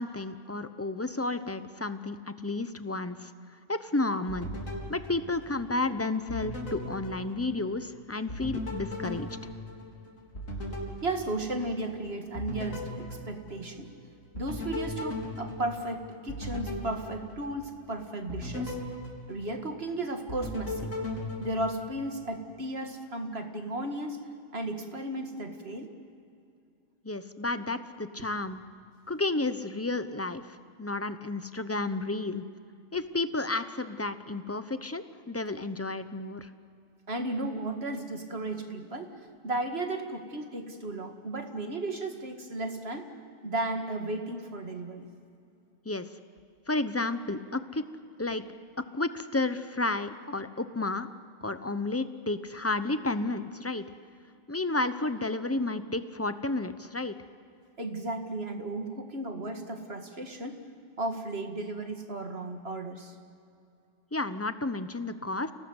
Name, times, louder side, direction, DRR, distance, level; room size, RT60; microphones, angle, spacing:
voice 1, 0.0-3.3 3.7-4.5 4.9-9.3 27.0-28.6 29.1-32.4 32.9-36.5 45.8-46.1 46.7-47.9 48.2-48.4 48.9-51.1 51.4-53.8 54.5-57.2 64.1-65.5, left 2 dB, 15° left, 11 dB, 0.7 m, -31 dB
sound 1, 4.3-5.9 6.3-7.9 8.3-11.9 12.4-13.9 14.3-17.8 18.3-19.9 20.3-22.3, left 1 dB, 80° left, 4.5 m, -38 dB
voice 2, 11.0-13.9 14.3-18.8 19.3-20.9 21.4-24.2 24.5-25.9 37.1-39.1 39.4-43.1 43.4-45.1 57.8-60.6 61.0-63.2, right 2 dB, 50° right, 4 dB, 2.3 m, -34 dB
29.5 x 18.5 x 8.1 m, 2.5 s
omnidirectional pair, 1.4 m